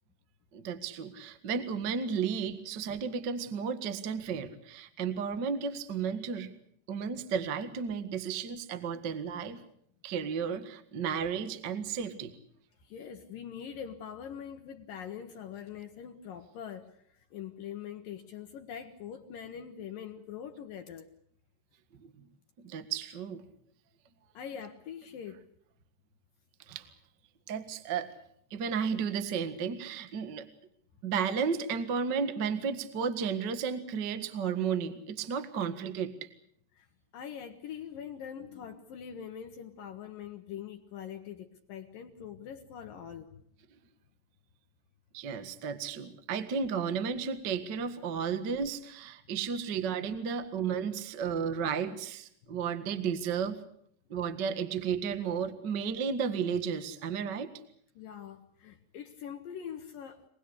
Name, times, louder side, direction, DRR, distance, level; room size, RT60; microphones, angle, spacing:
voice 1, 0.5-6.5 6.9-9.6 10.0-12.4 22.2-22.3 22.6-23.4 26.7-26.9 27.5-28.1 28.5-30.5 31.0-36.3 45.1-53.6 54.1-57.5, right 6 dB, 80° right, 10 dB, 0.9 m, -33 dB
voice 2, 12.8-21.1 24.3-25.4 36.7-36.9 37.1-43.3 52.5-52.6 58.0-60.3, left 8 dB, 65° left, 6 dB, 2.4 m, -43 dB
26.0 x 19.5 x 8.2 m, 0.68 s
omnidirectional pair, 5.0 m